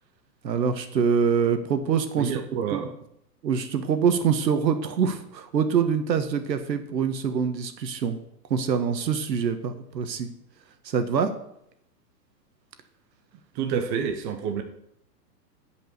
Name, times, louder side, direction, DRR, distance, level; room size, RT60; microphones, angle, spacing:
voice 1, 0.4-2.4 2.7-2.8 3.4-8.2 8.5-10.3 10.8-11.3, right 6 dB, 90° right, 9 dB, 1.6 m, -25 dB
voice 2, 2.2-2.9 13.5-14.6, right 7 dB, 15° right, 5 dB, 0.5 m, -28 dB
10.5 x 5.3 x 6.8 m, 0.75 s
hypercardioid pair, 150°, 49 cm